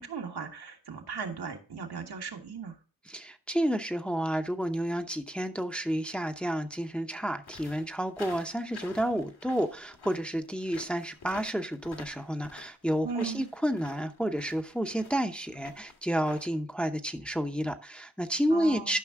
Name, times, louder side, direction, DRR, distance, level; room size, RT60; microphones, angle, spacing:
voice 1, 0.0-2.7 13.0-13.5 18.5-19.0, right 5 dB, 70° right, 1.5 m, -37 dB
voice 2, 3.1-19.0, equal, 5° left, 0.7 m, -30 dB
sound 1, 7.4-16.5, left 4 dB, 70° left, 1.9 m, -49 dB
12.0 x 5.4 x 3.6 m
cardioid pair, 65°, 40 cm